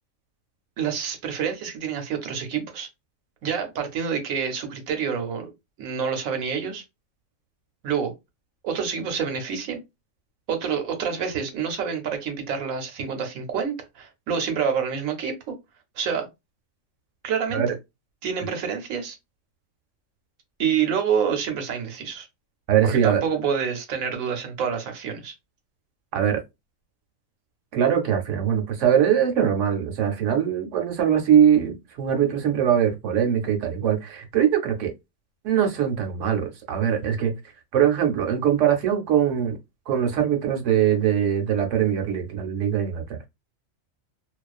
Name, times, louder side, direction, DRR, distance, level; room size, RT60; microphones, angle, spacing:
voice 1, 0.8-2.9 3.4-5.5 5.8-6.8 7.8-8.1 8.6-9.8 10.5-15.6 16.0-16.3 17.2-17.6 18.2-19.2 20.6-22.3 22.8-25.3, right 7 dB, 90° right, 1.1 m, -27 dB
voice 2, 22.7-23.2 26.1-26.4 27.7-34.9 35.4-37.3 37.7-39.6 39.9-43.2, right 9 dB, 70° right, 1.0 m, -22 dB
2.3 x 2.3 x 2.3 m
omnidirectional pair, 1.4 m